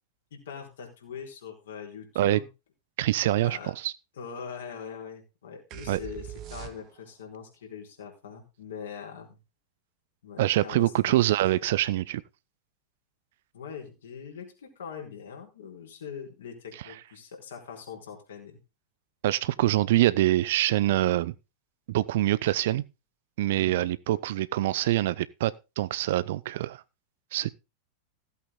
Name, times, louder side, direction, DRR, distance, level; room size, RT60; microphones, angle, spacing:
voice 1, 0.3-2.5 3.4-3.7 4.2-9.4 10.2-11.3 13.5-18.6 23.5-23.8, left 7 dB, 65° left, 4.6 m, -42 dB
voice 2, 3.0-3.9 5.9-6.0 10.4-12.2 19.2-21.3 21.9-22.8 23.4-26.8 27.3-27.5, right 15 dB, 55° right, 0.6 m, -25 dB
sound 1, 5.7-7.2, right 10 dB, 35° right, 1.5 m, -41 dB
16.0 x 8.3 x 3.8 m
figure-of-eight pair, 90°, 0 cm